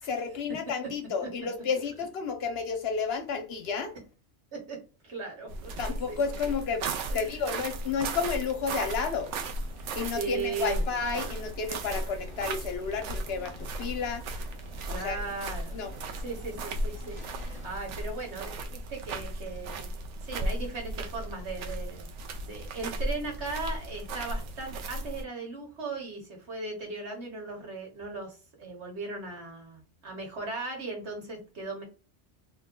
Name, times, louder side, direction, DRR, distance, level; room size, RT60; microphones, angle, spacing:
voice 1, 0.0-3.9 5.8-9.3 10.0-14.2 14.9-15.2 15.7-15.9, left 5 dB, 65° left, 0.8 m, -31 dB
voice 2, 5.0-6.2 7.1-7.4 10.1-10.8 14.8-15.8 16.2-19.9 20.3-22.1 22.4-31.8, right 3 dB, 70° right, 1.5 m, -38 dB
sound 1, 5.5-25.2, right 2 dB, 85° right, 0.9 m, -36 dB
sound 2, 9.3-17.8, left 2 dB, 30° left, 1.0 m, -52 dB
2.9 x 2.1 x 3.6 m
omnidirectional pair, 1.2 m